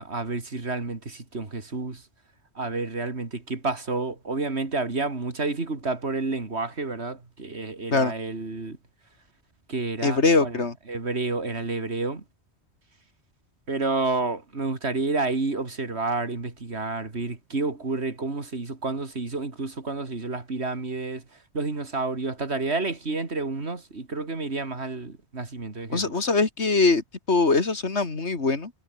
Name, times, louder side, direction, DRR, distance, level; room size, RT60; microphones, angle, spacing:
voice 1, 0.0-2.0 2.5-8.8 9.7-10.6 10.9-12.2 13.7-21.2 21.5-26.1, right 3 dB, 75° right, 3.2 m, -30 dB
voice 2, 10.0-10.7 25.9-28.7, left 3 dB, 85° left, 2.9 m, -22 dB
omnidirectional pair, 1.1 m